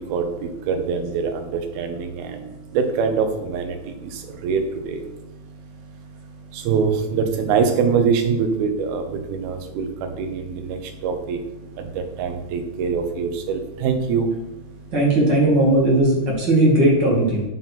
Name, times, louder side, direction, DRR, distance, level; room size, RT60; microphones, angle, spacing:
voice 1, 0.0-14.9, right 5 dB, 90° right, 6 dB, 2.9 m, -25 dB
voice 2, 14.9-17.4, right 1 dB, 35° right, -3 dB, 2.5 m, -17 dB
8.9 x 7.4 x 4.2 m, 0.96 s
omnidirectional pair, 4.3 m